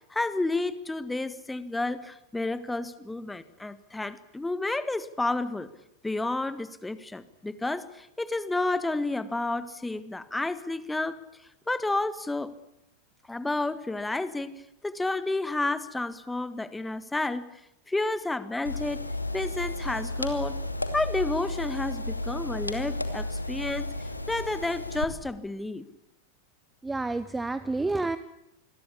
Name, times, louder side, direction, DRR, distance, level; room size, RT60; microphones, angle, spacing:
voice 1, 0.1-5.7 6.0-11.2 11.7-12.5 13.3-17.5 17.9-20.6 20.9-23.9 24.3-25.8, left 2 dB, 5° left, 14 dB, 1.7 m, -31 dB
sound 1, 18.6-25.0, left 1 dB, 85° left, 2.5 m, -33 dB
voice 2, 26.8-28.2, right 3 dB, 10° right, 15 dB, 0.9 m, -29 dB
27.5 x 21.5 x 8.6 m, 0.84 s
figure-of-eight pair, 90°, 0 cm